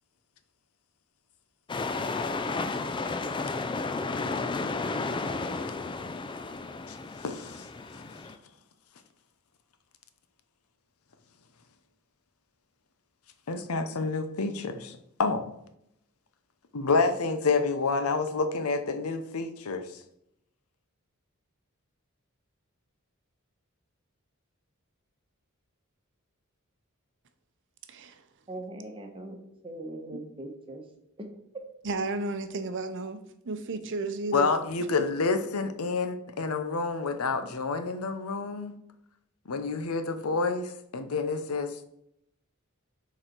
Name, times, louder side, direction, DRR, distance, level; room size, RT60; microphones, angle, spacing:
sound 1, 1.7-8.4, left 3 dB, 20° left, 0.4 m, -32 dB
voice 1, 7.2-7.7 13.5-14.9 15.2-15.4 16.7-19.9 34.3-38.7 39.5-41.8, left 4 dB, 90° left, 0.7 m, -28 dB
voice 2, 27.9-28.2 31.8-33.2 33.4-34.5, right 3 dB, 60° right, 0.7 m, -33 dB
voice 3, 28.5-29.4 29.6-30.8 31.2-31.3, right 1 dB, 25° right, 1.1 m, -40 dB
6.6 x 4.1 x 4.5 m
head